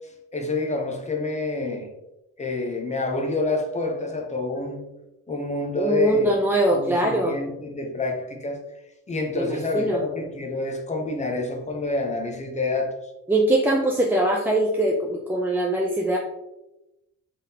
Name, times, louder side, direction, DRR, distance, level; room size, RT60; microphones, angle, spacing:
voice 1, 0.3-1.9 2.4-4.8 5.3-6.4 6.7-8.6 9.1-12.9, left 2 dB, 20° left, 2 dB, 0.7 m, -27 dB
voice 2, 5.8-7.4 9.3-10.0 13.3-16.2, right 1 dB, 5° right, -2 dB, 0.4 m, -22 dB
3.7 x 3.6 x 2.8 m, 0.92 s
cardioid pair, 125°, 32 cm